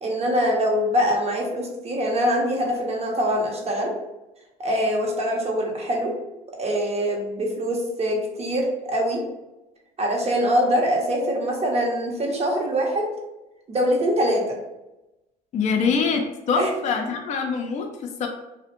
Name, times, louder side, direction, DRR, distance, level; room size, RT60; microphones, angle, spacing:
voice 1, 0.0-3.9 4.6-6.1 6.6-9.2 10.0-13.1 13.7-14.4 16.5-16.7, equal, 35° right, 0 dB, 0.8 m, -23 dB
voice 2, 15.5-18.3, left 5 dB, 40° left, 3 dB, 0.4 m, -24 dB
2.4 x 2.1 x 2.9 m, 0.97 s
supercardioid pair, 75°, 19 cm